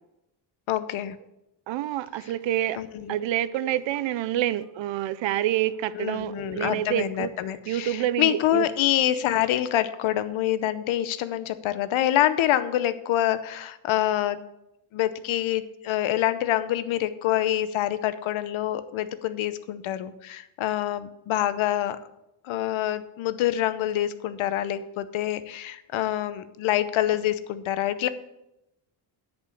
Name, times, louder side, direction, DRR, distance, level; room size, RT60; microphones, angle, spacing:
voice 1, 0.7-1.2 2.7-3.1 5.9-14.4 14.9-22.0 22.4-28.1, left 12 dB, 85° left, 0.8 m, -26 dB
voice 2, 1.7-2.8 3.1-7.3 7.7-8.7, right 13 dB, 70° right, 0.6 m, -27 dB
Telephone, 2.4-2.7 3.0-4.1 4.6-4.7 5.1-5.2 5.7-6.8 8.0-8.6, equal, 5° right, 1.4 m, -44 dB
10.0 x 5.4 x 7.0 m
cardioid pair, 130°, 47 cm